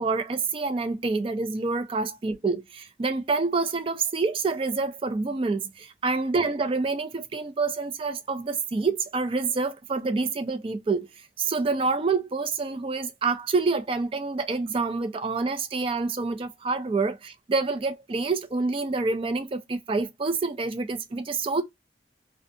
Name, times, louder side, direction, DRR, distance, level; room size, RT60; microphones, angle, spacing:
voice 1, 0.0-11.1 11.4-21.6, right 4 dB, 30° right, 0.3 m, -27 dB
2.6 x 2.2 x 2.5 m
head